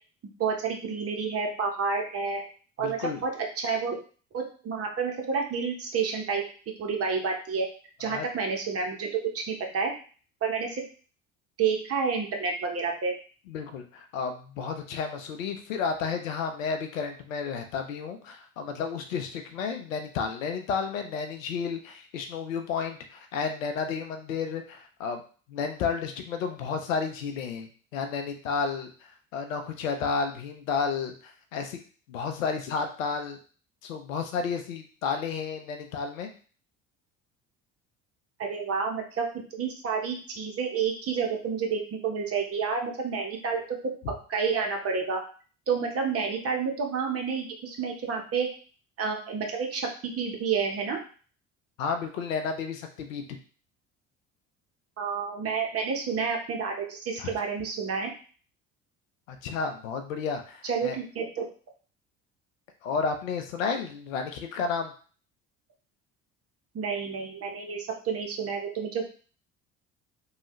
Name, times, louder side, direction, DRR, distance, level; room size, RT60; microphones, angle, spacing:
voice 1, 0.4-2.4 2.8-4.0 4.3-6.4 6.8-7.7 8.0-9.9 10.4-10.8 11.6-13.1 38.4-39.3 39.5-43.6 44.3-45.2 45.7-48.5 49.0-51.0 55.0-58.1 60.6-61.5 66.7-69.0, right 5 dB, 35° right, 2 dB, 0.8 m, -29 dB
voice 2, 2.8-3.2 8.1-8.3 13.5-25.2 25.5-31.8 32.1-33.4 33.8-36.3 51.8-53.2 57.2-57.3 59.3-61.0 62.8-64.9, left 5 dB, 75° left, 6 dB, 0.6 m, -32 dB
3.1 x 2.3 x 3.0 m, 0.40 s
figure-of-eight pair, 55°, 40 cm